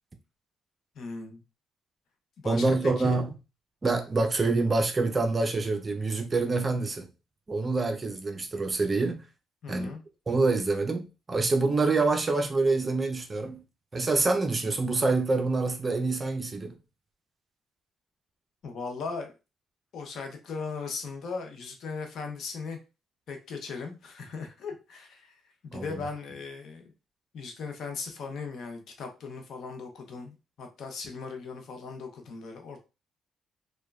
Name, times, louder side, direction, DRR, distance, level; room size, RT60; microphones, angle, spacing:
voice 1, 1.0-1.4 2.4-3.2 9.6-10.0 18.6-19.3 19.9-22.8 23.3-26.8 27.3-32.8, left 4 dB, 65° left, 0.6 m, -38 dB
voice 2, 2.4-3.3 3.8-7.1 7.5-9.2 9.7-9.9 10.3-13.6 13.9-16.7 25.7-25.9, right 3 dB, 30° right, 0.5 m, -26 dB
2.9 x 2.2 x 2.3 m
cardioid pair, 90°, 0 cm